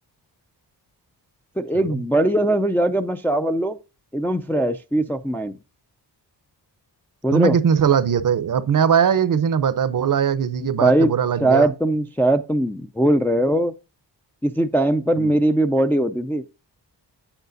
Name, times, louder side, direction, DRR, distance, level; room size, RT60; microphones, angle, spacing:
voice 1, 1.6-3.8 4.1-5.6 7.2-7.6 10.8-11.1 11.4-13.7 14.4-16.4, right 1 dB, 5° left, 0.3 m, -20 dB
voice 2, 7.3-11.7 15.2-15.3, right 7 dB, 50° right, 0.7 m, -20 dB
8.4 x 8.1 x 2.6 m
wide cardioid pair, 100°, 41 cm